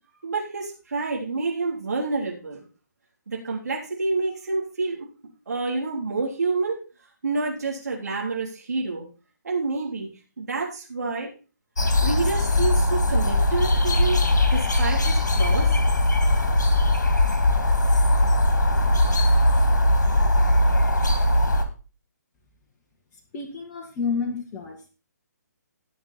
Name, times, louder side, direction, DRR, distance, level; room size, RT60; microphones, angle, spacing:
voice 1, 0.2-2.6 3.3-5.0 5.5-6.8 7.2-9.1 9.4-10.1 10.4-11.3 12.0-15.8, right 3 dB, 65° right, -3 dB, 3.5 m, -28 dB
sound 1, 11.8-21.6, left 1 dB, 70° left, 2.2 m, -20 dB
voice 2, 23.3-24.8, left 5 dB, 25° left, 1 dB, 1.8 m, -29 dB
18.0 x 6.1 x 4.2 m, 0.34 s
figure-of-eight pair, 135°, 10 cm